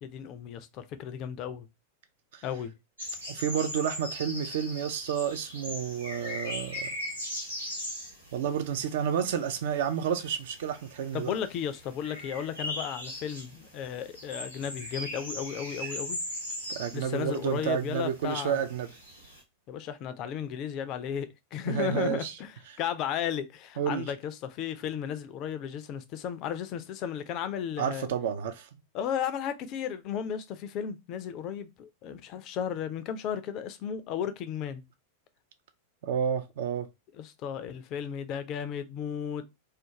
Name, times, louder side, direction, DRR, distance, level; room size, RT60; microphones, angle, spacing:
voice 1, 0.0-1.7 2.4-2.7 11.1-16.2 16.9-18.6 19.7-28.1 28.9-34.8 37.2-39.4, left 8 dB, 40° left, 0.3 m, -34 dB
sound 1, 3.0-19.4, left 1 dB, 90° right, 0.9 m, -40 dB
voice 2, 3.3-6.9 8.3-11.3 16.7-18.9 21.7-22.3 22.7-22.8 23.8-24.1 27.8-28.7 36.0-36.9, right 8 dB, 55° right, 0.4 m, -30 dB
2.4 x 2.2 x 2.8 m
figure-of-eight pair, 90°, 0 cm